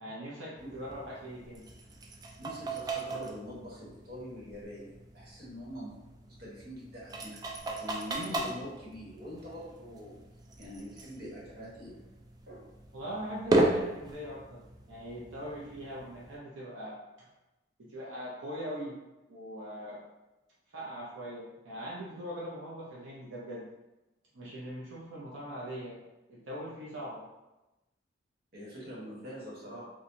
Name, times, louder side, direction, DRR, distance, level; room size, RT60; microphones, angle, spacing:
voice 1, 0.0-1.6 12.9-14.6 14.9-17.3 17.8-19.0 19.3-20.0 20.7-23.7 24.3-26.0 26.3-27.2, equal, 90° right, -6 dB, 0.8 m, -41 dB
sound 1, 0.6-16.4, right 1 dB, 20° right, 0.3 m, -36 dB
voice 2, 2.4-5.9 6.4-10.2 10.6-12.0 12.5-12.7 28.5-29.8, equal, 55° right, -6 dB, 1.2 m, -44 dB
4.4 x 2.4 x 2.7 m, 1.0 s
head